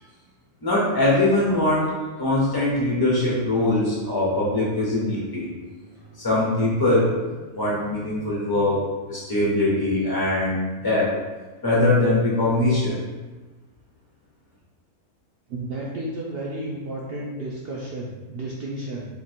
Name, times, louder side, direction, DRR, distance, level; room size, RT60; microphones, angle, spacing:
voice 1, 0.6-5.5 6.1-7.3 7.5-11.1 11.6-13.0, left 2 dB, 35° left, -6 dB, 0.3 m, -22 dB
voice 2, 15.5-19.1, right 1 dB, 65° right, -5 dB, 0.6 m, -32 dB
3.0 x 2.8 x 4.2 m, 1.2 s
omnidirectional pair, 1.6 m